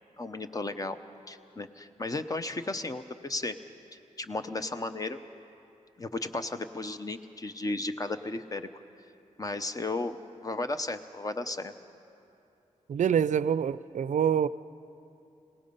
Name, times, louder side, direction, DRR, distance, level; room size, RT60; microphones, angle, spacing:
voice 1, 0.2-1.0 1.3-3.5 3.9-5.2 6.0-8.7 9.4-11.7, left 2 dB, 25° left, 0.8 m, -34 dB
voice 2, 12.9-14.5, right 8 dB, 65° right, 0.4 m, -26 dB
27.0 x 18.0 x 5.5 m
wide cardioid pair, 115°, 13 cm